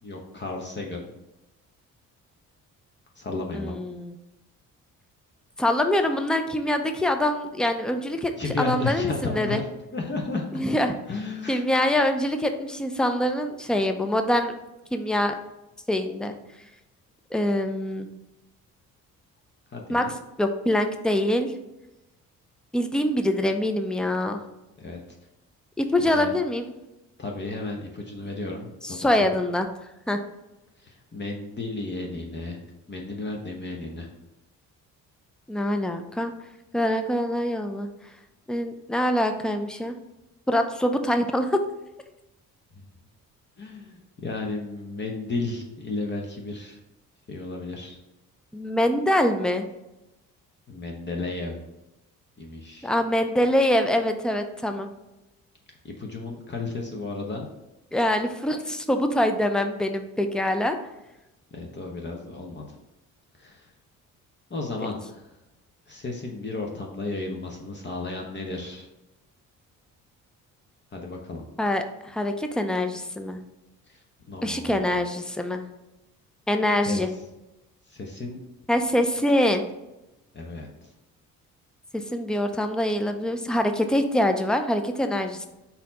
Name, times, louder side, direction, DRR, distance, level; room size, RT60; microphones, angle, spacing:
voice 1, 0.0-1.1 3.2-3.8 8.4-9.6 9.9-10.6 11.1-11.6 19.7-20.1 24.8-25.0 26.0-26.3 27.2-29.4 30.8-32.6 32.9-34.1 42.7-42.9 43.6-46.8 47.3-48.0 50.7-51.6 52.4-52.9 55.8-57.5 61.5-62.8 63.3-63.7 64.5-65.3 65.9-68.9 70.9-71.4 73.8-74.9 76.8-77.2 77.9-78.4 80.3-80.9, left 3 dB, 35° left, 0 dB, 0.8 m, -33 dB
voice 2, 3.5-4.1 5.6-8.3 8.6-9.6 10.5-10.9 11.5-14.5 14.9-15.3 15.9-16.4 17.3-18.1 19.9-20.0 20.4-21.5 22.7-24.4 25.8-26.6 28.8-29.7 30.1-30.2 35.5-36.3 36.7-37.9 38.5-39.9 40.5-41.6 48.5-49.6 52.8-54.9 57.9-60.8 71.6-73.4 74.4-75.6 76.5-77.1 78.7-79.6 81.9-85.5, left 1 dB, ahead, 6 dB, 0.4 m, -24 dB
4.0 x 2.8 x 4.2 m, 0.95 s
cardioid pair, 75°, 34 cm